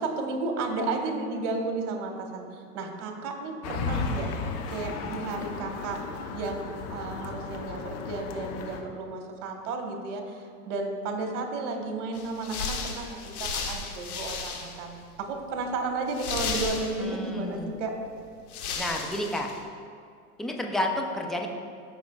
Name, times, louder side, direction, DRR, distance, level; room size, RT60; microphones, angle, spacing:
voice 1, 0.0-4.3 4.7-6.0 6.3-17.9, right 3 dB, 50° right, 3 dB, 1.6 m, -33 dB
sound 1, 3.6-8.8, left 4 dB, 35° left, 0.9 m, -34 dB
sound 2, 12.1-14.9 15.2-15.3 16.1-17.3 18.1-18.2 18.5-19.6, left 5 dB, 70° left, 1.3 m, -34 dB
voice 2, 17.0-17.7 18.8-19.5 20.4-21.5, left 1 dB, ahead, 1 dB, 0.4 m, -30 dB
15.0 x 5.3 x 2.4 m, 2.2 s
hypercardioid pair, 100°, 45 cm